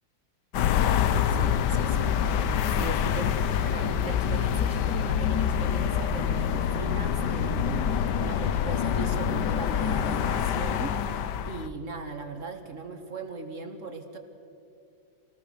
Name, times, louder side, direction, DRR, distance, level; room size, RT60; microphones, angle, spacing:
sound 1, 0.5-11.7, left 8 dB, 70° left, 1.3 m, -26 dB
voice 1, 1.3-11.2 11.5-14.2, right 3 dB, 45° right, 5 dB, 2.0 m, -39 dB
26.5 x 19.0 x 6.6 m, 2.6 s
omnidirectional pair, 2.0 m